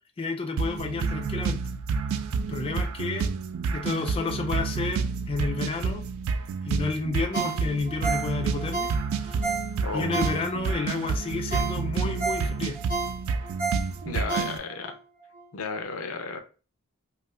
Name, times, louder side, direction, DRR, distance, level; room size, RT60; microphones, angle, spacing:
voice 1, 0.2-1.6 2.5-3.3 3.7-6.0 6.7-8.9 9.2-9.4 9.9-12.8, left 4 dB, 25° left, 4 dB, 0.3 m, -31 dB
sound 1, 0.6-14.6, right 5 dB, 75° right, 0.3 m, -29 dB
Ringtone, 7.3-10.8 11.2-11.3 11.5-14.9 15.3-15.4, right 4 dB, 45° right, 1.2 m, -31 dB
voice 2, 9.8-10.3 14.0-14.9 15.5-16.4, left 4 dB, 85° left, 7 dB, 0.6 m, -33 dB
2.7 x 2.4 x 3.1 m, 0.35 s
head